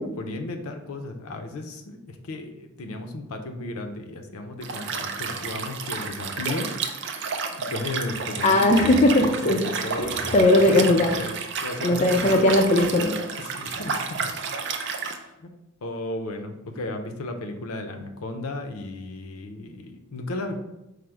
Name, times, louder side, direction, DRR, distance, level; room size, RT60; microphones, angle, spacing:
voice 1, 0.0-7.4 7.7-8.6 9.2-11.4 11.6-12.5 13.4-13.9 14.2-14.3 15.0-15.5 15.8-20.5, left 2 dB, 80° left, 6 dB, 0.5 m, -34 dB
Liquid, 4.6-15.2, right 5 dB, 55° right, 0.4 m, -31 dB
voice 2, 8.4-9.6 10.0-11.1 11.8-13.1, left 1 dB, 30° left, 2 dB, 0.4 m, -19 dB
4.9 x 2.0 x 4.4 m, 0.93 s
head